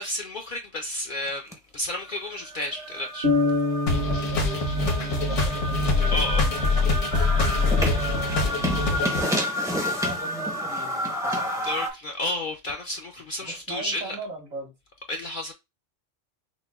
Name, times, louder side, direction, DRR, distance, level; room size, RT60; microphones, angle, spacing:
voice 1, 0.0-3.3 6.1-6.5 11.3-14.1 15.1-15.5, left 1 dB, 60° left, 0.5 m, -31 dB
sound 1, 1.5-1.6 2.0-11.9, equal, 5° right, 0.4 m, -30 dB
sound 2, 3.2-7.0, left 2 dB, 45° right, 0.8 m, -28 dB
sound 3, 3.9-9.2, left 3 dB, 80° left, 1.3 m, -24 dB
voice 2, 4.3-7.0 7.6-9.5 10.0-11.7 13.4-14.7, right 3 dB, 70° right, 1.8 m, -40 dB
6.1 x 2.1 x 2.3 m
omnidirectional pair, 1.2 m